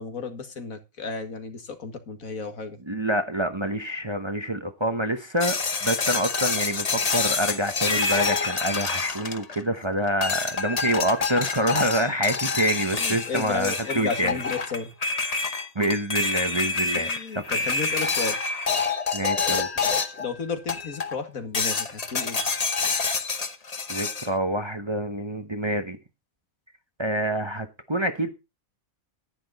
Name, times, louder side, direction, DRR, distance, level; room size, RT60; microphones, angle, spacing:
voice 1, 0.0-2.8 13.0-14.9 16.9-18.4 20.0-22.4, left 5 dB, 80° left, 7 dB, 2.2 m, -33 dB
voice 2, 2.9-14.4 15.7-17.1 17.5-17.6 19.1-19.7 23.9-26.0 27.0-28.3, equal, 25° right, 7 dB, 0.9 m, -27 dB
sound 1, 5.4-9.8 10.2-20.3 20.7-21.2 21.5-24.3, left 4 dB, 30° left, 0.9 m, -27 dB
10.5 x 10.0 x 4.0 m, 0.26 s
omnidirectional pair, 1.4 m